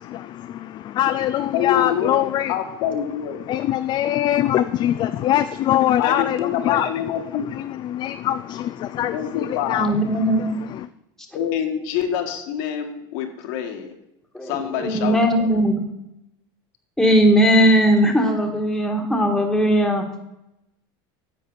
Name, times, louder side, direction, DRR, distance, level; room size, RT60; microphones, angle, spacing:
voice 1, 0.0-2.6 3.5-10.9, left 12 dB, 40° left, 10 dB, 0.4 m, -23 dB
voice 2, 1.5-3.5 6.0-7.5 9.1-9.8 11.3-13.9 14.4-15.5, left 9 dB, 75° left, 4 dB, 1.6 m, -26 dB
voice 3, 9.8-10.5 14.3-14.5 14.8-15.8 17.0-20.0, equal, 5° left, 2 dB, 1.6 m, -18 dB
10.0 x 7.5 x 4.1 m, 0.87 s
supercardioid pair, 130°, 12 cm